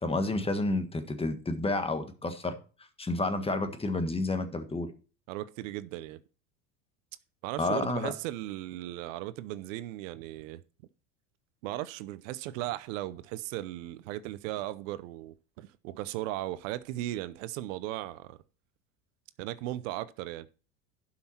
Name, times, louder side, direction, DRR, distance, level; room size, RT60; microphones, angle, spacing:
voice 1, 0.0-2.6 3.0-4.9 7.6-8.1, left 2 dB, 15° left, 1.6 m, -30 dB
voice 2, 5.3-6.2 7.4-10.6 11.6-18.4 19.4-20.5, right 15 dB, 70° right, 0.8 m, -37 dB
11.5 x 5.9 x 4.4 m
hypercardioid pair, 95°, 41 cm